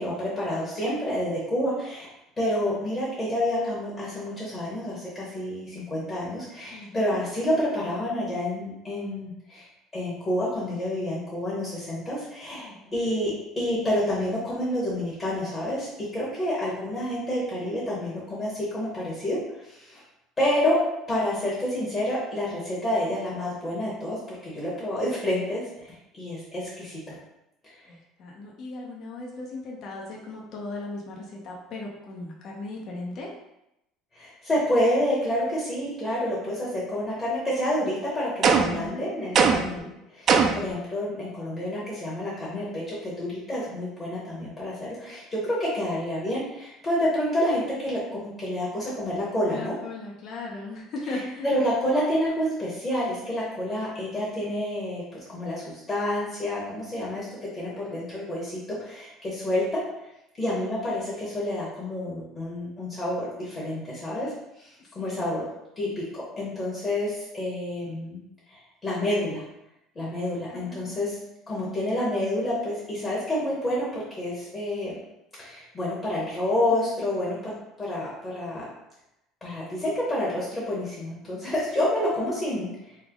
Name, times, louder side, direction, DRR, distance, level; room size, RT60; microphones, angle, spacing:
voice 1, 0.0-2.1 2.4-9.6 9.9-20.0 20.4-20.8 21.1-27.1 27.6-27.8 34.1-49.7 51.1-55.0 55.3-59.8 60.4-64.3 64.6-65.4 65.8-68.2 68.5-69.4 69.9-71.1 71.5-75.0 75.4-77.5 77.8-78.7 79.4-82.7, left 1 dB, 25° left, -7 dB, 1.1 m, -29 dB
voice 2, 6.7-7.2 12.6-13.0 27.9-33.3 38.6-39.0 49.5-51.5 65.0-65.3 70.5-71.3 76.7-77.0 77.3-77.6, left 2 dB, 50° left, -2 dB, 0.7 m, -38 dB
sound 1, 38.4-38.9 39.3-39.8 40.3-40.7, right 5 dB, 45° right, 0.4 m, -20 dB
3.3 x 2.0 x 3.6 m, 0.86 s
supercardioid pair, 115°, 0 cm